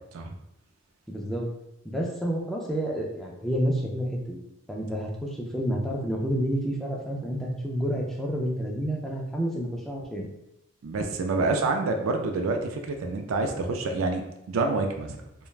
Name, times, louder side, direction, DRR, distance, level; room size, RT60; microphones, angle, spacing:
voice 1, 1.1-1.5 1.8-4.4 4.7-10.3, equal, ahead, -1 dB, 0.3 m, -29 dB
voice 2, 10.8-15.2, right 3 dB, 90° right, 4 dB, 0.4 m, -27 dB
3.2 x 2.1 x 2.3 m, 0.85 s
head